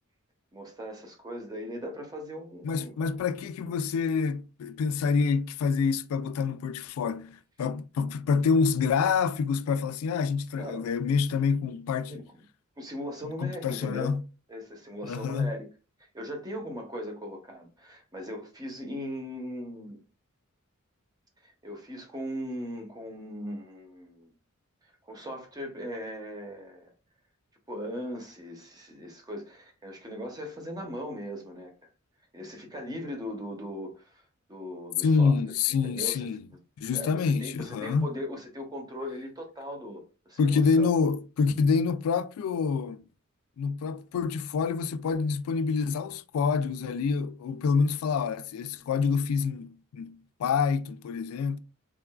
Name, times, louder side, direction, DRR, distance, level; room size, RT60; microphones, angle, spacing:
voice 1, 0.5-3.1 10.6-10.9 12.1-12.4 12.8-14.2 14.5-15.7 16.1-20.0 21.4-24.3 24.8-26.9 27.7-31.7 32.3-34.2 34.5-35.4 35.8-36.3 36.9-40.9, equal, 20° right, 0.7 m, -39 dB
voice 2, 2.6-12.2 13.4-14.2 15.0-15.5 35.0-36.4 36.8-38.1 40.4-43.0 43.6-51.6, left 5 dB, 85° left, 0.3 m, -27 dB
3.6 x 2.4 x 2.2 m
head